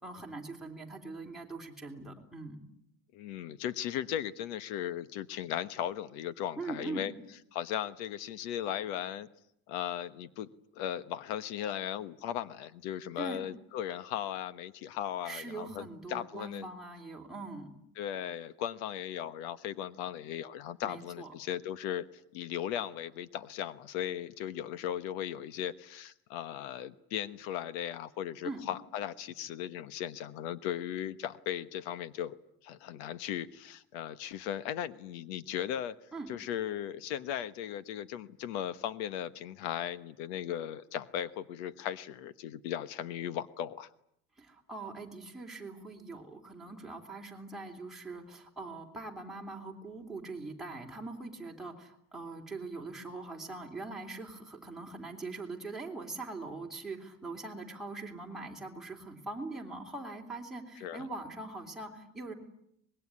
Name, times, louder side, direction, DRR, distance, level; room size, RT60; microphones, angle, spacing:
voice 1, 0.0-2.6 6.6-7.1 13.2-13.5 15.2-17.7 20.8-21.3 28.4-28.7 36.1-36.3 44.4-62.3, right 3 dB, ahead, -2 dB, 3.4 m, -42 dB
voice 2, 3.1-7.1 7.5-9.3 9.7-16.7 18.0-22.1 22.3-32.3 32.6-35.9 36.3-43.9 60.8-61.1, left 10 dB, 80° left, 14 dB, 1.3 m, -37 dB
25.0 x 21.0 x 9.8 m, 0.74 s
cardioid pair, 170°, 33 cm